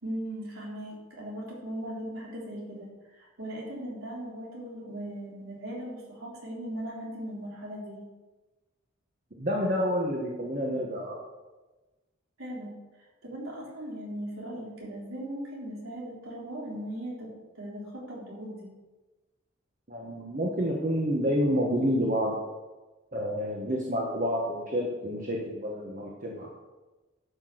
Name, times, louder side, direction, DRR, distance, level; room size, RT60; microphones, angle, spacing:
voice 1, 0.0-8.1 12.4-12.7 13.2-18.8, right 1 dB, 80° right, -4 dB, 3.8 m, -38 dB
voice 2, 9.4-11.1 19.9-22.4 23.1-26.5, equal, 40° right, -1 dB, 1.3 m, -29 dB
11.0 x 6.0 x 6.5 m, 1.2 s
head